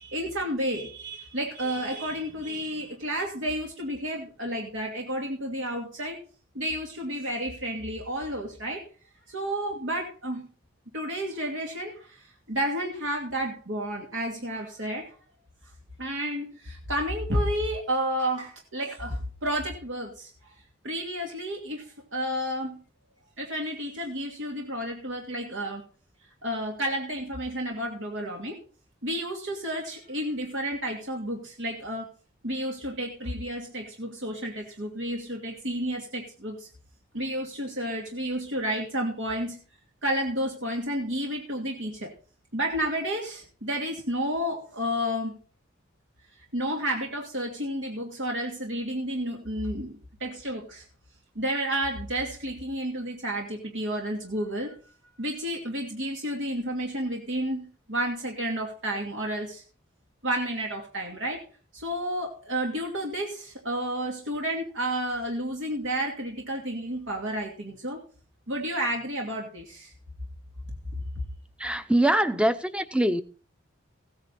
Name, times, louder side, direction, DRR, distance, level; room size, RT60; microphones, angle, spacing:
voice 1, 0.0-6.2 6.5-8.8 9.3-10.5 10.9-15.1 16.0-20.5 20.8-22.8 23.4-25.8 26.4-28.6 29.0-32.1 32.4-36.7 37.1-39.6 40.0-42.1 42.5-45.4 46.5-49.9 50.2-50.8 51.3-54.8 55.2-59.6 60.2-61.4 61.7-68.0 68.5-69.9, equal, 80° right, 2.6 m, -31 dB
voice 2, 71.6-73.2, right 1 dB, 5° right, 0.7 m, -23 dB
16.0 x 9.6 x 4.1 m
head